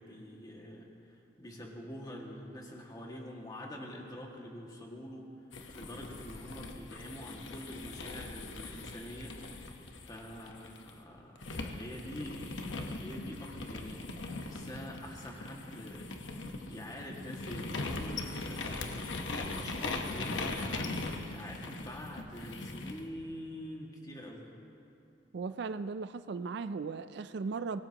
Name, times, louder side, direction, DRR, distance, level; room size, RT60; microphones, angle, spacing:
voice 1, 0.0-5.3 5.7-9.4 10.0-16.2 16.7-20.9 21.3-24.4, equal, 20° left, -1 dB, 2.0 m, -46 dB
sound 1, 5.5-10.9 11.4-23.0, left 2 dB, 85° left, 1.1 m, -40 dB
voice 2, 25.3-27.8, right 4 dB, 65° right, 12 dB, 0.4 m, -37 dB
24.0 x 18.0 x 3.0 m, 2.6 s
head